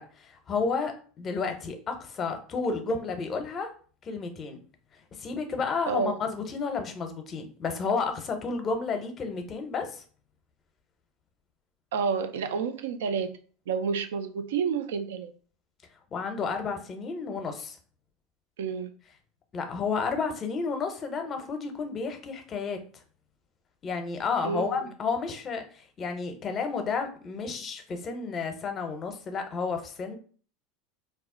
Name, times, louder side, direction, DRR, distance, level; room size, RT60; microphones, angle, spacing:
voice 1, 0.0-3.7 4.0-4.6 5.2-10.0 16.1-17.8 19.5-22.8 23.8-30.1, left 4 dB, 35° left, 6 dB, 0.6 m, -31 dB
voice 2, 5.9-6.2 11.9-13.3 13.7-15.3 18.6-18.9 24.4-24.9, right 6 dB, 80° right, 9 dB, 0.3 m, -29 dB
2.3 x 2.0 x 3.6 m, 0.42 s
hypercardioid pair, 95°, 0 cm